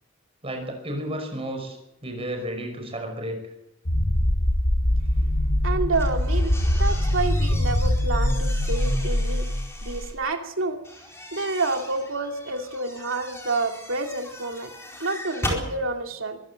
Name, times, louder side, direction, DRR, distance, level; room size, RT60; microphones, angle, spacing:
voice 1, 0.4-1.8 2.0-3.4, right 1 dB, 30° right, 4 dB, 5.6 m, -32 dB
sound 1, 3.9-10.1, left 1 dB, 50° left, 1.7 m, -23 dB
voice 2, 5.6-9.5 9.8-10.8 11.3-14.7 15.0-16.4, right 3 dB, 75° right, 3 dB, 2.6 m, -29 dB
sound 2, 5.9-10.1 10.8-15.7, left 1 dB, 15° left, 4.4 m, -38 dB
23.5 x 15.5 x 7.6 m, 0.88 s
head